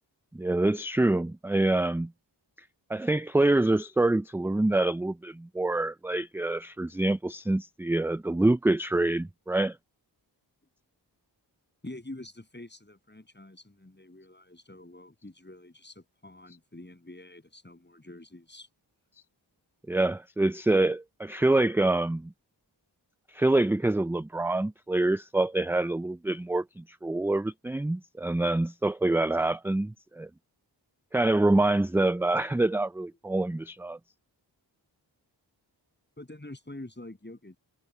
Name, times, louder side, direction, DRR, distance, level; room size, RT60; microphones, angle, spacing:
voice 1, 0.3-2.1 2.9-9.8 19.9-22.3 23.3-30.3 31.1-34.0, right 2 dB, 5° right, 0.3 m, -26 dB
voice 2, 11.8-18.7 36.2-37.6, left 1 dB, 25° left, 7.8 m, -46 dB
cardioid pair, 50°, 45 cm